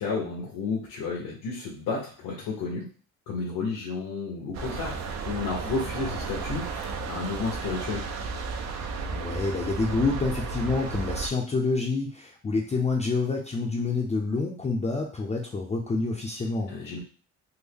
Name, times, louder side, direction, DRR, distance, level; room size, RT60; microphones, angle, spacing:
voice 1, 0.0-2.9 3.3-5.0 5.3-8.0 16.7-17.0, left 4 dB, 85° left, -4 dB, 1.0 m, -32 dB
sound 1, 4.5-11.3, right 4 dB, 55° right, 0.6 m, -33 dB
voice 2, 9.1-17.0, left 3 dB, 20° left, -1 dB, 0.5 m, -28 dB
3.5 x 2.0 x 3.4 m, 0.39 s
cardioid pair, 105°, 32 cm